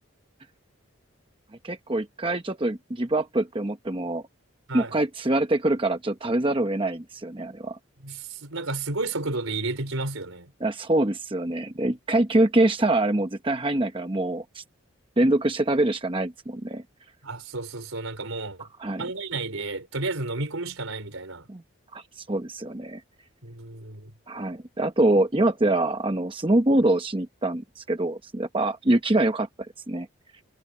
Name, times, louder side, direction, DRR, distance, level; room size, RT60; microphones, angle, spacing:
voice 1, 1.6-4.2 4.7-7.8 10.6-14.6 15.2-16.8 18.6-19.0 21.5-21.6 21.9-23.0 24.3-30.1, right 1 dB, 25° right, 0.9 m, -24 dB
voice 2, 8.0-10.5 17.2-18.7 19.0-21.5 23.4-24.1, right 3 dB, 80° right, 4.0 m, -32 dB
head